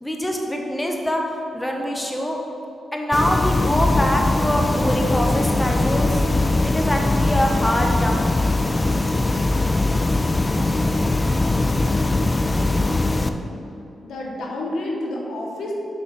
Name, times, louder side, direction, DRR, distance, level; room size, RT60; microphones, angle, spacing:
voice 1, 0.0-1.2 1.5-2.4 2.9-6.2 6.6-8.5, equal, 10° left, 1 dB, 1.0 m, -24 dB
sound 1, 3.1-13.3, left 2 dB, 30° left, 0.4 m, -21 dB
voice 2, 14.0-15.7, left 1 dB, 80° left, -1 dB, 1.0 m, -29 dB
6.2 x 5.7 x 4.2 m, 2.8 s
supercardioid pair, 50°, 0 cm